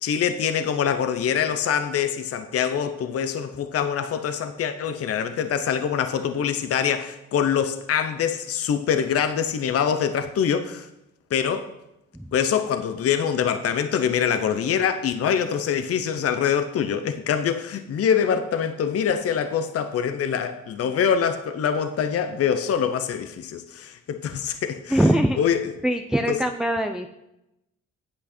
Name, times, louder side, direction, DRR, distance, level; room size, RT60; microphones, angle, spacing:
voice 1, 0.0-10.9 11.3-11.7 12.3-25.0 25.4-25.7 26.3-26.4, left 8 dB, 50° left, 0.7 m, -24 dB
voice 2, 24.9-25.4 25.8-27.1, right 1 dB, ahead, 0.5 m, -22 dB
8.6 x 7.6 x 4.4 m
cardioid pair, 90°, 30 cm